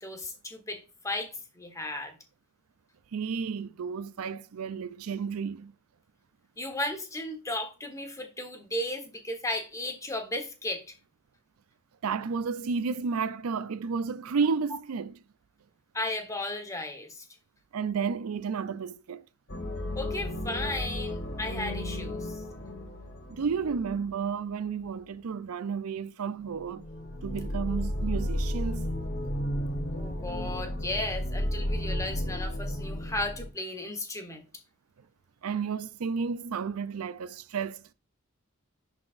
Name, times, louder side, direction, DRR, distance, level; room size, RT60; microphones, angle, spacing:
voice 1, 0.0-1.3 1.5-2.2 6.6-10.8 15.9-17.2 19.9-22.4 29.9-34.4, left 1 dB, 15° left, 1.2 m, -35 dB
voice 2, 3.1-5.7 12.0-15.2 17.7-19.2 23.3-26.9 27.2-28.9 35.4-37.9, right 5 dB, 90° right, 0.5 m, -32 dB
sound 1, 19.5-24.3 26.4-33.5, equal, 55° left, 1.4 m, -33 dB
10.5 x 4.1 x 2.5 m
head